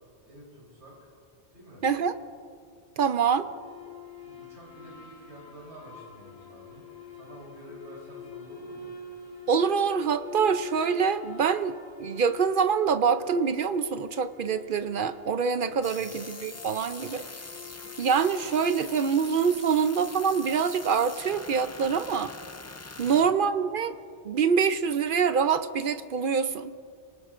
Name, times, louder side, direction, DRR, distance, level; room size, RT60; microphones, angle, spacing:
voice 1, 0.2-1.1 1.5-1.9 3.1-3.6 4.2-6.8 7.1-8.9 15.8-16.2 22.9-23.3, equal, 80° right, -4 dB, 4.1 m, -49 dB
voice 2, 1.8-2.1 3.0-3.5 9.5-17.2 18.0-22.3 23.0-23.9 24.2-26.7, right 6 dB, 60° right, 11 dB, 0.7 m, -25 dB
sound 1, 3.4-20.0, left 5 dB, 80° left, 1.4 m, -46 dB
sound 2, 15.8-23.2, left 3 dB, 20° left, 0.4 m, -43 dB
27.0 x 19.0 x 2.5 m, 2.3 s
omnidirectional pair, 1.1 m